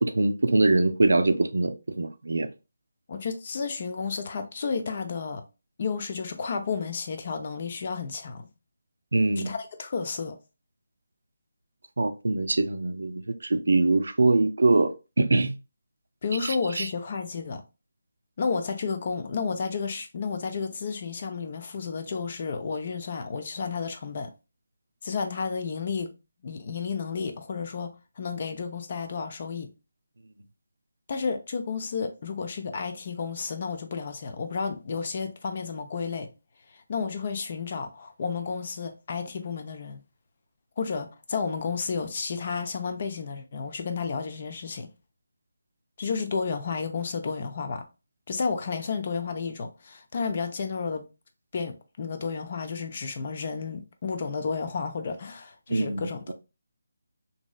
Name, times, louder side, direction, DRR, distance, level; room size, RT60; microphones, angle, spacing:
voice 1, 0.0-2.5 9.1-9.5 12.0-15.5 16.4-16.9 55.7-56.3, right 2 dB, 70° right, 0.4 m, -23 dB
voice 2, 3.1-5.4 5.8-8.5 9.4-10.4 16.2-17.6 18.4-24.3 25.0-26.1 26.4-29.7 31.1-36.3 36.7-40.0 40.8-44.9 46.0-47.9 48.3-51.1 51.5-56.3, left 5 dB, 40° left, 0.5 m, -32 dB
3.0 x 2.7 x 2.3 m
figure-of-eight pair, 155°, 0 cm